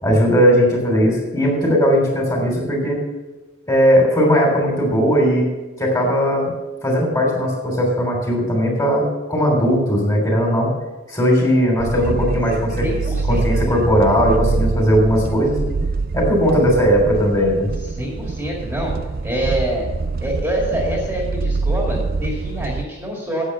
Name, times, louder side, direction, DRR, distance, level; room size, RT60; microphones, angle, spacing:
voice 1, 0.0-3.0 3.7-5.5 5.8-6.5 6.8-10.7 11.1-12.8 13.3-15.6 16.1-17.7, equal, 20° left, 0 dB, 3.2 m, -17 dB
sound 1, 11.8-22.8, right 3 dB, 45° right, 0.4 m, -25 dB
voice 2, 12.8-13.7 17.9-19.9 20.2-23.4, right 1 dB, 10° right, -3 dB, 2.1 m, -26 dB
10.0 x 8.4 x 6.9 m, 1.2 s
head